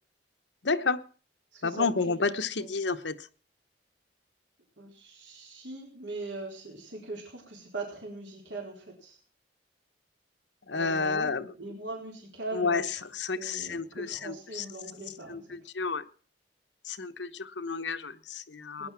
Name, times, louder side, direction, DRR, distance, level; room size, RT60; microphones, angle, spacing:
voice 1, 0.6-1.0 1.6-3.3 10.7-11.5 12.5-14.6 15.3-16.0 16.8-18.9, left 4 dB, 75° left, 1.1 m, -30 dB
voice 2, 1.5-1.9 2.6-2.7 4.8-9.2 10.7-12.9 13.4-15.6 18.8-18.9, right 2 dB, 85° right, 4.3 m, -40 dB
19.5 x 10.5 x 6.0 m
head